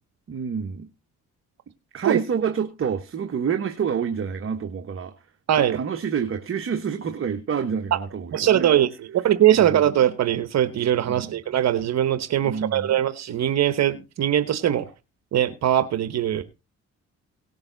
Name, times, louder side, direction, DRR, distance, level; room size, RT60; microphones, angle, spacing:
voice 1, 0.3-0.9 1.9-5.1 5.6-8.7 9.5-9.8 11.1-11.4 12.4-13.0, right 7 dB, 45° right, 1.3 m, -28 dB
voice 2, 8.3-14.9 15.3-16.4, right 11 dB, 60° right, 1.1 m, -21 dB
18.0 x 6.9 x 4.0 m
cardioid pair, 90°, 30 cm